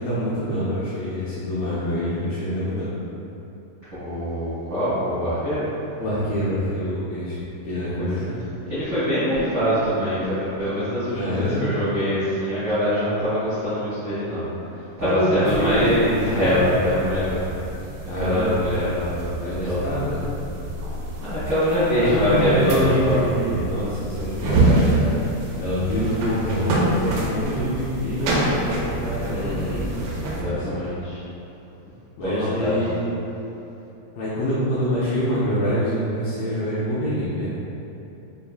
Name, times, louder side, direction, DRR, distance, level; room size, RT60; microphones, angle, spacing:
voice 1, 0.0-2.9 6.0-8.2 11.1-11.6 15.0-17.1 17.5-17.6 18.1-18.6 19.4-20.3 22.0-25.2 25.6-29.9 30.2-30.7 32.2-33.2 34.1-37.5, equal, 85° left, -10 dB, 2.0 m, -25 dB
voice 2, 3.9-5.6 8.0-8.3 8.6-14.5 15.0-17.4 18.2-19.8 21.2-23.2 29.3-29.9 30.2-31.2 32.2-32.8, equal, 60° right, -16 dB, 1.1 m, -24 dB
sound 1, 15.5-30.4, right 2 dB, 85° right, 2.1 m, -27 dB
6.7 x 2.6 x 2.3 m, 3.0 s
omnidirectional pair, 4.7 m